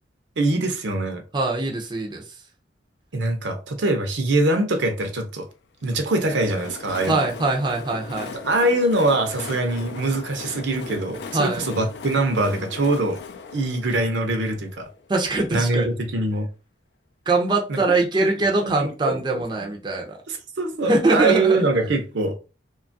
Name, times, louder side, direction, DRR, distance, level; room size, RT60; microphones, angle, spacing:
voice 1, 0.4-1.2 3.1-5.5 5.8-7.3 8.4-13.2 13.5-14.9 15.5-16.5 17.7-17.8 18.6-19.7 20.3-22.4, right 2 dB, 75° right, 0.6 m, -23 dB
voice 2, 1.3-2.2 7.1-8.4 11.3-11.6 15.1-15.9 17.3-20.2 20.8-21.7, right 2 dB, 25° right, 0.4 m, -22 dB
Train, 5.8-15.5, left 4 dB, 65° left, 0.4 m, -39 dB
2.8 x 2.3 x 2.6 m
head